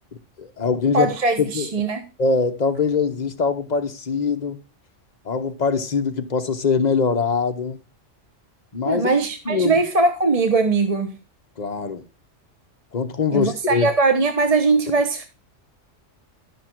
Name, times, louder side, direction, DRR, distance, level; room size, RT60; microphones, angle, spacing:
voice 1, 0.4-1.1 1.4-1.7 2.2-4.6 5.2-7.8 8.7-9.1 9.5-9.8 11.6-12.0 12.9-13.9, left 5 dB, 35° left, 1.1 m, -22 dB
voice 2, 0.9-2.1 8.8-11.2 13.3-15.3, right 3 dB, 30° right, 1.0 m, -20 dB
12.0 x 6.0 x 4.5 m
omnidirectional pair, 1.3 m